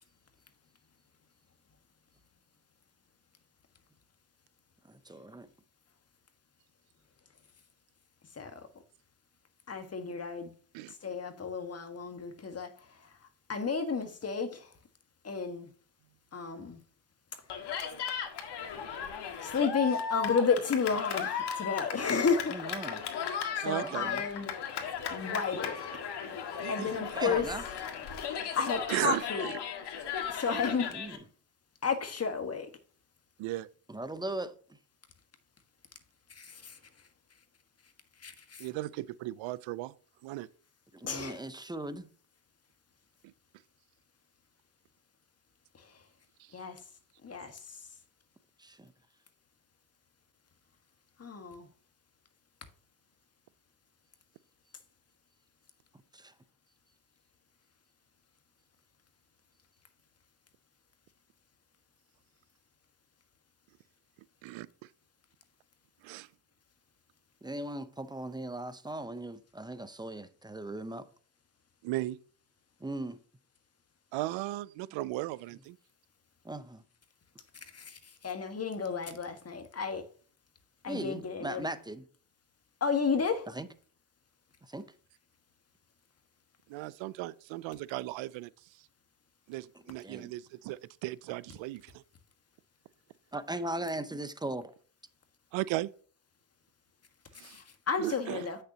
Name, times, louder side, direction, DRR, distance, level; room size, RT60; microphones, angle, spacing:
voice 1, 4.8-5.5 22.5-23.0 23.8-24.2 27.1-27.6 30.9-31.2 33.9-34.8 40.9-42.1 48.6-48.9 56.1-56.3 67.4-71.1 72.8-73.2 76.4-76.8 80.9-82.0 83.5-83.7 84.6-84.9 90.0-90.3 93.3-94.7, right 1 dB, 10° right, 0.7 m, -38 dB
voice 2, 9.7-10.5 11.0-12.7 13.5-14.6 15.2-15.7 16.3-16.8 19.4-22.6 23.6-24.5 25.1-25.8 26.7-27.4 28.6-29.5 30.3-30.9 31.8-32.7 36.4-36.7 38.2-38.6 41.0-41.4 46.5-46.8 47.2-47.6 51.2-51.6 77.7-78.0 78.2-80.0 80.8-81.7 82.8-83.5 97.4-98.6, left 5 dB, 30° left, 1.5 m, -32 dB
Cheering, 17.5-31.2, left 7 dB, 60° left, 1.8 m, -36 dB
voice 3, 23.6-24.1 26.6-27.2 28.9-29.6 33.4-33.7 38.6-39.9 40.2-40.5 46.4-46.5 64.4-64.7 66.0-66.3 71.8-72.2 74.1-75.8 86.7-88.5 89.5-92.0 95.5-95.9 97.3-97.6 98.0-98.5, right 17 dB, 75° right, 0.6 m, -36 dB
8.1 x 6.7 x 2.8 m
supercardioid pair, 75°, 46 cm